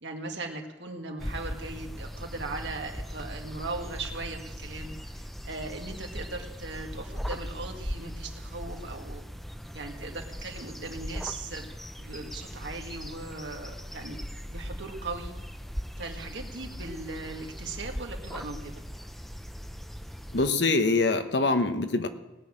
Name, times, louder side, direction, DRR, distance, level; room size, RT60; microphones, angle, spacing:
voice 1, 0.0-9.2 9.7-14.2 14.5-15.3 16.0-18.7, right 3 dB, 80° right, 2 dB, 2.0 m, -39 dB
sound 1, 1.2-20.5, equal, ahead, 0.5 m, -39 dB
voice 2, 20.3-22.1, left 3 dB, 75° left, 8 dB, 1.1 m, -24 dB
19.0 x 6.4 x 8.9 m, 1.1 s
head